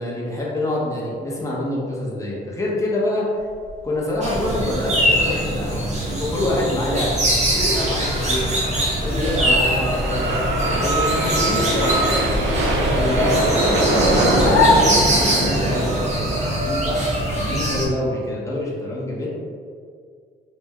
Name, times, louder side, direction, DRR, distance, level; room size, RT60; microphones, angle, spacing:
voice 1, 0.0-3.3 3.8-8.5 9.0-10.4 10.6-12.4 12.9-13.8 14.3-19.3, left 1 dB, 15° left, -5 dB, 0.9 m, -26 dB
sound 1, 3.7-3.8 4.1-4.2 4.5-4.6 5.1-5.4 6.7-16.1, right 1 dB, 75° right, 0.7 m, -24 dB
sound 2, 4.2-17.8, right 1 dB, 35° right, 0.9 m, -22 dB
sound 3, 11.1-15.6, left 2 dB, 75° left, 0.6 m, -24 dB
3.4 x 2.5 x 3.4 m, 2.1 s
cardioid pair, 90°, 20 cm